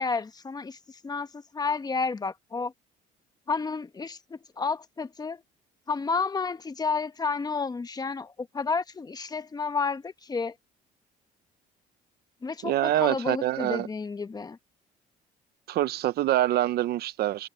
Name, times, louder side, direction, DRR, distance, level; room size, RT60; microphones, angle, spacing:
voice 1, 0.0-2.7 3.5-5.4 5.9-10.5 12.4-14.6, left 4 dB, 25° left, 1.1 m, -31 dB
voice 2, 12.6-13.9 15.7-17.5, right 14 dB, 70° right, 0.8 m, -25 dB
cardioid pair, 110°, 17 cm